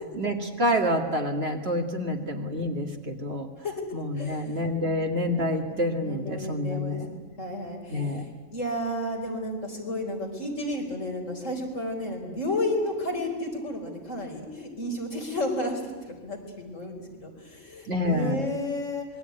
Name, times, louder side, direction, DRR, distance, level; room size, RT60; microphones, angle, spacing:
voice 1, 0.2-3.5 3.9-7.1 7.9-8.3 17.9-18.5, left 1 dB, 50° right, 3 dB, 2.4 m, -28 dB
voice 2, 4.1-5.0 5.7-15.8 16.2-19.1, left 1 dB, 65° left, 2 dB, 5.0 m, -32 dB
26.0 x 21.5 x 9.6 m, 1.4 s
omnidirectional pair, 1.4 m